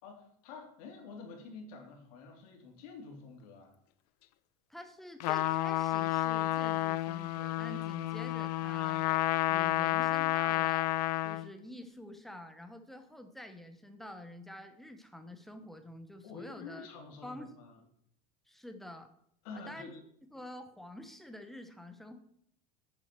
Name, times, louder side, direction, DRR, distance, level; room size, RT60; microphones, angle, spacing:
voice 1, 0.0-3.7 16.2-17.8 19.4-20.0, left 4 dB, 65° left, 1 dB, 3.3 m, -48 dB
voice 2, 4.7-9.1 9.5-10.9 11.2-16.9 17.2-17.6 18.5-19.1 19.5-19.9 20.3-22.2, left 1 dB, ahead, 7 dB, 0.8 m, -48 dB
Trumpet, 5.2-11.5, left 15 dB, 85° left, 0.6 m, -30 dB
9.1 x 7.6 x 6.0 m, 0.69 s
cardioid pair, 170°, 20 cm